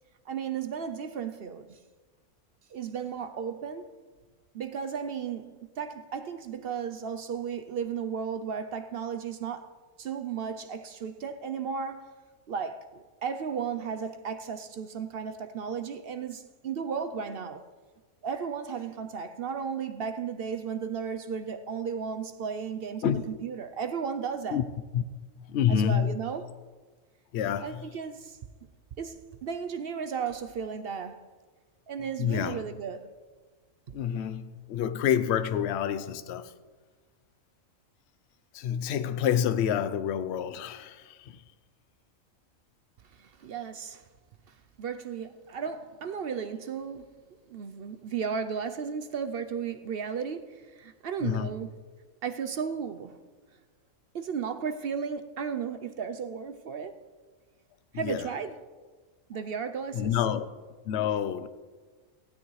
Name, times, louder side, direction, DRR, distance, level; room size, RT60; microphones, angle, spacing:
voice 1, 0.3-1.8 2.7-3.9 4.5-9.7 10.0-12.1 12.5-17.7 18.2-24.6 25.7-26.6 27.6-28.4 29.0-31.3 31.9-33.1 33.9-34.0 43.1-44.0 44.8-47.1 47.5-51.8 52.2-53.2 54.1-57.0 57.9-58.6 59.3-60.2, right 6 dB, 60° right, 0.7 m, -34 dB
voice 2, 25.4-26.2 27.3-27.9 32.2-32.6 33.9-36.5 38.5-41.4 51.2-51.6 57.9-58.3 59.9-60.5 60.9-61.5, left 9 dB, 60° left, 0.8 m, -28 dB
15.5 x 12.0 x 3.2 m
omnidirectional pair, 1.4 m